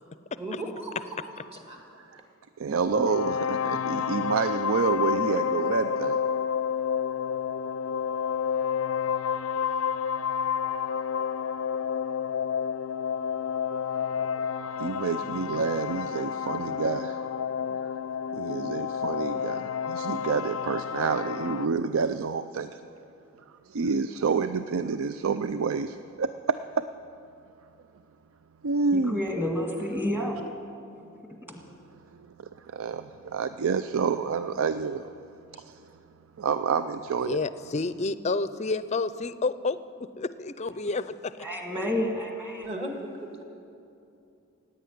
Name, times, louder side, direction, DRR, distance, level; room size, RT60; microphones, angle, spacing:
voice 1, 0.4-1.2 1.5-1.8 42.6-43.4, right 1 dB, 30° right, 2 dB, 2.1 m, -36 dB
voice 2, 2.6-6.2 14.7-17.3 18.3-22.8 23.7-26.9 28.6-29.2 32.4-35.1 35.5-35.8 36.4-37.4, right 5 dB, 80° right, 11 dB, 0.5 m, -28 dB
sound 1, 2.8-21.7, left 7 dB, 85° left, 0.4 m, -30 dB
voice 3, 28.9-30.4 31.5-31.6 41.4-42.7, left 1 dB, 10° right, 1 dB, 1.9 m, -30 dB
voice 4, 37.2-39.8 40.2-41.5, left 3 dB, 35° left, 14 dB, 0.5 m, -29 dB
16.0 x 9.5 x 9.3 m, 2.6 s
head